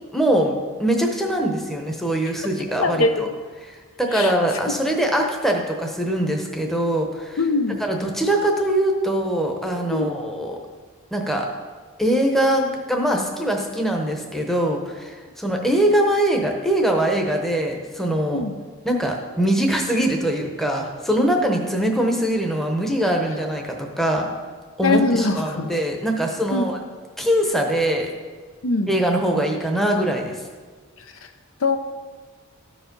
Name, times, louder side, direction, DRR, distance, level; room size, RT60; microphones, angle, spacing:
voice 1, 0.1-0.5 0.8-3.3 3.7-7.4 7.7-10.6 11.1-11.5 12.0-18.4 18.8-24.3 24.8-26.8 27.2-28.1 28.9-30.4, right 1 dB, ahead, 2 dB, 0.8 m, -22 dB
voice 2, 2.8-3.2 4.1-4.3 7.4-7.8 9.9-10.1 18.3-18.5 24.8-25.7 26.5-26.6 28.6-28.9 31.6-31.8, left 2 dB, 65° left, 7 dB, 0.7 m, -21 dB
13.0 x 5.0 x 5.2 m, 1.5 s
head